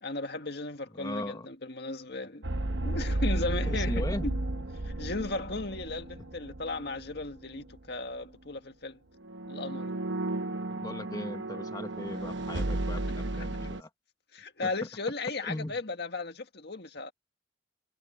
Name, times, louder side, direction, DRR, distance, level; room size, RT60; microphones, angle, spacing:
voice 1, 0.0-2.4 2.8-4.4 4.8-9.0 9.5-10.0 14.3-17.1, left 3 dB, 60° left, 1.9 m, -36 dB
voice 2, 0.9-1.5 3.7-4.3 10.7-13.9 14.6-14.7 15.4-15.7, left 1 dB, 20° left, 1.2 m, -38 dB
sound 1, 2.4-7.3 7.5-7.8 9.2-13.8, right 2 dB, 70° right, 1.0 m, -33 dB
head